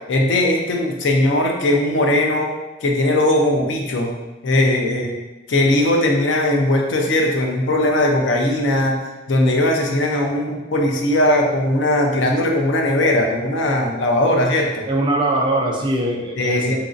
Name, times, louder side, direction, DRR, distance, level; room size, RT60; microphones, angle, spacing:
voice 1, 0.0-2.5 2.8-4.2 4.4-5.2 5.5-9.0 9.3-14.9 16.4-16.8, left 1 dB, 70° left, 1 dB, 0.5 m, -19 dB
voice 2, 14.9-16.8, right 1 dB, 25° right, -1 dB, 0.4 m, -21 dB
2.9 x 2.5 x 2.5 m, 1.1 s
head